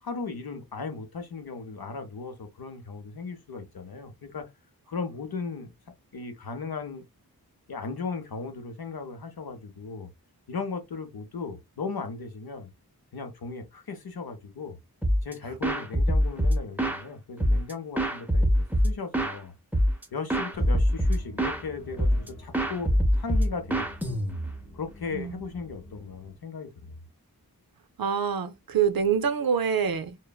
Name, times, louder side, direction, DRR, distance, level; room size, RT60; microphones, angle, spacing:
voice 1, 0.0-4.5 4.9-5.7 6.1-7.0 7.7-10.1 10.5-12.7 13.1-14.8 15.2-19.5 20.1-22.9 23.2-24.3 24.7-26.9, left 4 dB, 70° left, 0.7 m, -37 dB
sound 1, 15.0-15.3 15.6-17.0 17.4-19.4 19.7-20.0 20.3-21.6 22.0-22.3 22.5-24.6, equal, 5° right, 0.5 m, -24 dB
sound 2, 20.5-26.4, equal, 35° left, 0.9 m, -46 dB
voice 2, 25.1-25.4 28.0-30.2, right 7 dB, 70° right, 0.5 m, -26 dB
3.0 x 2.0 x 2.3 m
wide cardioid pair, 45°, 38 cm